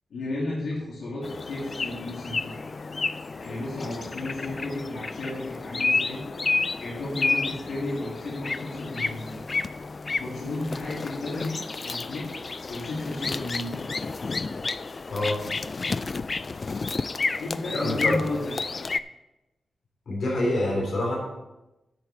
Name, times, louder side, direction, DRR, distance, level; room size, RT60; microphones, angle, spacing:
voice 1, 0.1-2.5 3.4-6.2 6.8-9.3 10.2-12.2 12.7-13.7 17.4-18.6, left 2 dB, 85° left, -7 dB, 3.1 m, -33 dB
sound 1, 1.2-19.0, left 4 dB, 35° left, 0.3 m, -31 dB
voice 2, 17.7-18.2 20.1-21.2, left 1 dB, 60° left, -3 dB, 3.8 m, -26 dB
10.5 x 8.1 x 4.5 m, 0.98 s
wide cardioid pair, 140°, 0 cm